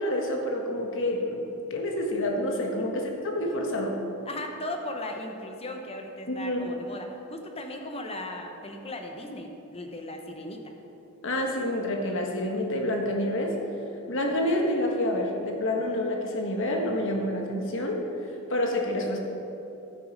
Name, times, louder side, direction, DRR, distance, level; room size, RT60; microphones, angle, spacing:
voice 1, 0.0-1.4 1.7-4.0 6.3-6.7 11.2-13.6 14.1-18.0 18.5-19.2, left 1 dB, 60° left, 1 dB, 1.5 m, -28 dB
voice 2, 4.3-10.6, left 1 dB, 25° left, 3 dB, 1.0 m, -37 dB
14.0 x 6.5 x 5.3 m, 2.9 s
head